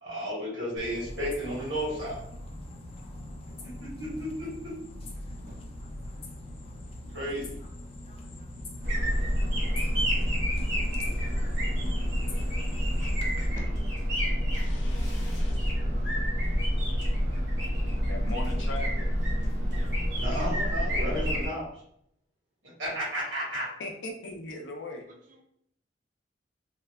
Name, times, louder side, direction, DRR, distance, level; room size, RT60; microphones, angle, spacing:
voice 1, 0.0-2.2 3.6-4.7 7.1-7.4 20.2-21.6 22.8-23.7, equal, 85° right, -6 dB, 1.3 m, -33 dB
sound 1, 0.8-13.5, left 1 dB, 30° left, 0.4 m, -42 dB
sound 2, 8.8-21.5, equal, 65° right, 1.0 m, -28 dB
voice 2, 14.5-15.6 18.1-19.0 23.8-25.1, left 2 dB, 85° left, 1 dB, 0.5 m, -39 dB
voice 3, 25.1-25.4, right 2 dB, 45° right, 0 dB, 0.4 m, -48 dB
2.8 x 2.2 x 2.2 m, 0.71 s
head